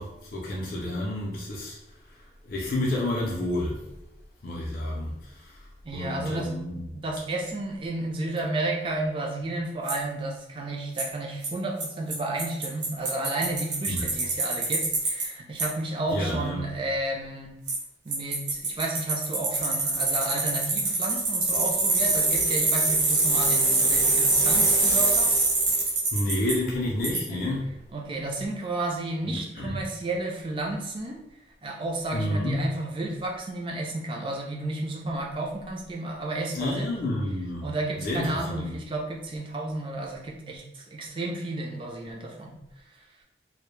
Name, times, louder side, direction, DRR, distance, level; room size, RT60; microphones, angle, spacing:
voice 1, 0.0-1.8 2.4-3.8 4.4-5.6 5.9-6.8 13.9-14.0 16.1-16.6 26.1-27.7 29.2-29.7 32.1-32.7 36.5-37.6 38.0-38.8, left 1 dB, 50° left, -4 dB, 0.4 m, -30 dB
voice 2, 5.8-17.5 18.0-25.4 27.3-27.4 27.9-31.2 31.6-36.9 37.6-42.5, right 2 dB, 30° right, 0 dB, 0.3 m, -32 dB
Bicycle, 9.9-10.0 11.0-11.1 11.4-11.5 11.8-11.9 12.1-12.2 12.4-15.2 15.6-15.7 17.7-17.8 18.1-26.5 27.0-27.2, right 2 dB, 70° right, 0.8 m, -24 dB
2.1 x 2.0 x 3.0 m, 0.88 s
head